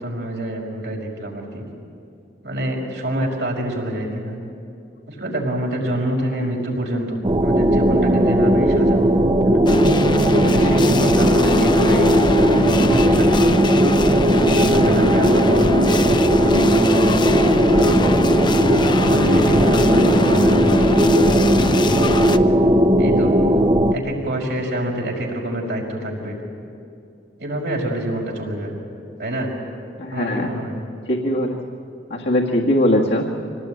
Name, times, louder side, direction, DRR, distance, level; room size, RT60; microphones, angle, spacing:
voice 1, 0.0-1.7 2.4-4.4 5.1-9.1 9.4-9.7 10.3-13.6 14.3-18.5 19.0-22.0 23.0-23.4 23.9-26.4 27.4-28.8 29.2-29.5 30.1-30.8, right 1 dB, 70° right, -1 dB, 5.3 m, -26 dB
sound 1, 7.2-23.9, right 1 dB, 25° right, 0.8 m, -17 dB
sound 2, 9.7-22.4, left 2 dB, 25° left, 0.6 m, -22 dB
voice 2, 30.0-30.5 31.1-31.6 32.1-33.3, left 1 dB, 75° left, -2 dB, 1.8 m, -20 dB
25.5 x 18.5 x 9.0 m, 2.6 s
head